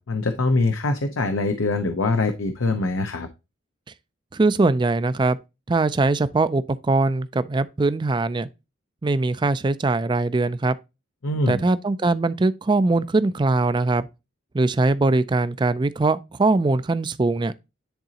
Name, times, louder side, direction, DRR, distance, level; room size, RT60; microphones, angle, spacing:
voice 1, 0.0-3.3 11.2-11.6, left 3 dB, 75° left, 0.7 m, -23 dB
voice 2, 4.3-5.4 5.7-8.5 9.0-10.8 11.5-14.1 14.5-17.5, right 3 dB, 20° right, 0.3 m, -21 dB
10.5 x 3.9 x 2.8 m
head